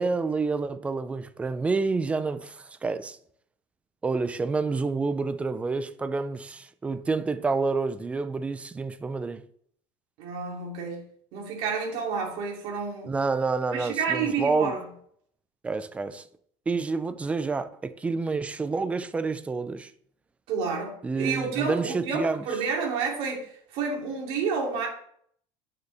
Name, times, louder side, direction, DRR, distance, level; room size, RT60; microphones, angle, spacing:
voice 1, 0.0-3.2 4.0-9.4 13.1-14.7 15.6-16.2 16.7-19.9 21.0-22.4, right 4 dB, 10° right, 0.4 m, -28 dB
voice 2, 10.2-11.0 11.3-13.2 13.7-14.8 20.5-24.9, right 5 dB, 50° right, 2.8 m, -30 dB
9.3 x 6.8 x 3.4 m
cardioid pair, 170°, 13 cm